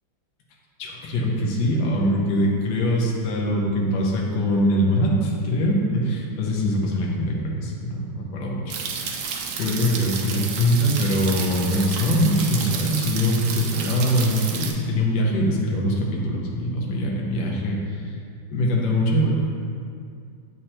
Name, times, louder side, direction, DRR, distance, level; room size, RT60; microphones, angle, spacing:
voice 1, 0.8-9.2 9.6-18.2 18.5-19.3, equal, 65° left, -3 dB, 1.6 m, -23 dB
sound 1, 8.7-14.7, right 5 dB, 70° right, 1.0 m, -31 dB
8.0 x 4.4 x 2.9 m, 2.3 s
omnidirectional pair, 2.3 m